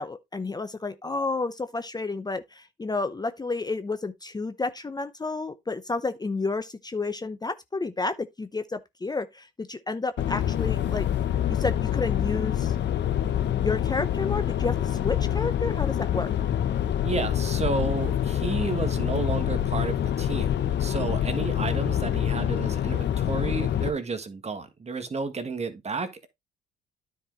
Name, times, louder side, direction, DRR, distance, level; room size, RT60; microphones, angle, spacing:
voice 1, 0.0-11.0 11.5-12.7 13.5-16.3, left 3 dB, 20° left, 0.7 m, -31 dB
sound 1, 10.2-23.9, left 10 dB, 60° left, 0.9 m, -26 dB
voice 2, 17.0-26.3, right 4 dB, 35° right, 1.6 m, -32 dB
9.8 x 4.7 x 3.8 m
cardioid pair, 90°, 20 cm